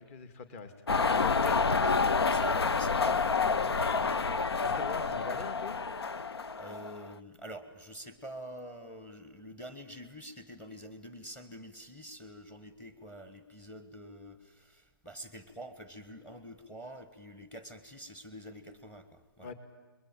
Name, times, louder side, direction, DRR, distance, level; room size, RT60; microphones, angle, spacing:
voice 1, 0.0-1.6 3.8-4.0 4.6-5.8 19.4-19.5, left 5 dB, 35° left, 9 dB, 2.2 m, -43 dB
sound 1, 0.9-7.1, left 4 dB, 90° left, 0.9 m, -28 dB
voice 2, 1.4-1.9 2.2-4.3 5.1-5.2 6.6-19.5, equal, 10° left, 12 dB, 1.4 m, -47 dB
28.5 x 22.0 x 8.9 m, 1.3 s
hypercardioid pair, 150°, 13 cm